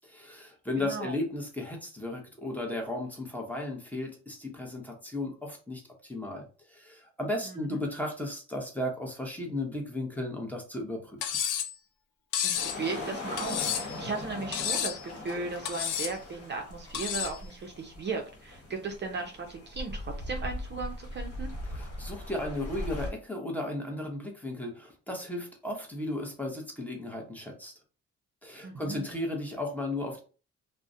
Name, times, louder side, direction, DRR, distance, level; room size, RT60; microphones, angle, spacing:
voice 1, 0.0-11.3 21.7-27.7 28.4-30.2, left 1 dB, 5° left, 1 dB, 0.7 m, -35 dB
voice 2, 0.8-1.1 7.4-7.8 12.4-21.5 28.6-29.0, right 4 dB, 35° right, 2 dB, 0.4 m, -36 dB
Cutlery silverware, 11.2-11.7 12.3-12.8 13.4-14.0 14.5-15.0 15.7-16.2 16.9-17.4, left 9 dB, 85° left, 0.5 m, -31 dB
sound 1, 12.5-23.1, left 2 dB, 55° left, 1.1 m, -40 dB
2.3 x 2.0 x 2.6 m, 0.36 s
cardioid pair, 90°, 30 cm